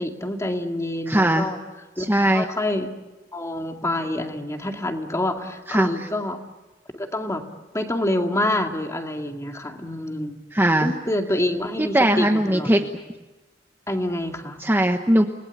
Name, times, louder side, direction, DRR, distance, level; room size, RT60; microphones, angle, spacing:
voice 1, 0.0-1.6 2.0-2.9 3.3-6.4 6.9-7.4 7.7-10.4 10.8-12.7 13.9-14.6, left 1 dB, 15° left, 4 dB, 2.3 m, -27 dB
voice 2, 1.1-1.5 2.0-2.5 5.7-5.9 10.5-10.9 11.8-12.9 14.6-15.3, right 1 dB, 10° right, 4 dB, 1.1 m, -19 dB
30.0 x 19.5 x 8.4 m, 1.1 s
head